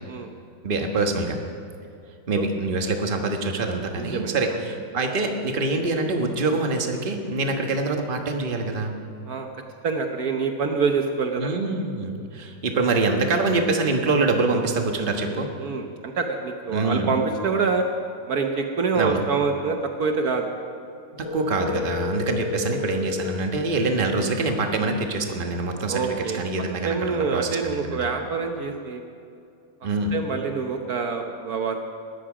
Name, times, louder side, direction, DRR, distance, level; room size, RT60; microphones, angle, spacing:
voice 1, 0.6-1.4 2.3-8.9 11.4-15.5 16.7-17.1 18.9-19.2 21.2-28.1 29.8-30.1, right 3 dB, 35° right, 3 dB, 1.4 m, -25 dB
voice 2, 4.0-4.6 9.2-9.5 9.8-11.5 15.6-17.9 18.3-20.5 21.7-21.9 25.9-26.4 26.8-29.0 30.1-31.8, right 5 dB, 65° right, 4 dB, 1.4 m, -26 dB
Telephone, 21.2-23.2, left 5 dB, 50° left, 2.4 m, -30 dB
20.0 x 13.5 x 5.0 m, 2.5 s
omnidirectional pair, 1.8 m